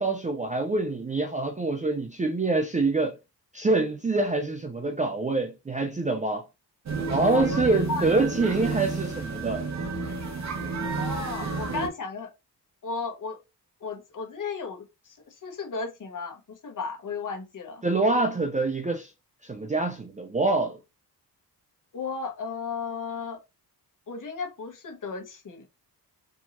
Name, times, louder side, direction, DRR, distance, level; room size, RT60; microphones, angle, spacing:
voice 1, 0.0-3.2 3.5-6.4 7.1-9.7 17.8-19.1 19.4-20.8, right 3 dB, 20° right, 0.4 m, -25 dB
sound 1, 6.9-11.9, right 4 dB, 40° right, 0.9 m, -31 dB
voice 2, 7.3-8.1 11.0-12.3 12.8-13.4 13.8-17.8 21.9-23.4 24.1-25.7, left 4 dB, 50° left, 1.2 m, -34 dB
4.5 x 2.7 x 2.9 m
wide cardioid pair, 125°, 41 cm